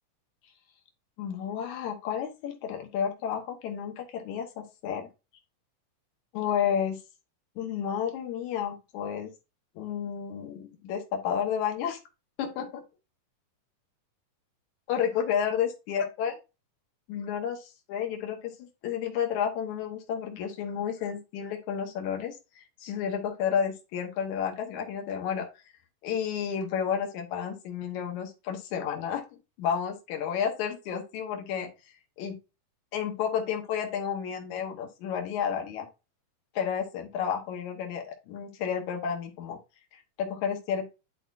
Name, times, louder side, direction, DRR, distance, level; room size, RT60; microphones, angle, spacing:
voice 1, 1.2-5.1 6.3-7.0 7.6-9.3 9.8-12.0 12.4-12.8 14.9-16.3 17.1-25.6 26.0-32.4 32.9-35.9 36.5-39.6 39.9-40.9, left 8 dB, 65° left, 3 dB, 2.5 m, -31 dB
10.5 x 4.3 x 2.6 m, 0.28 s
omnidirectional pair, 3.8 m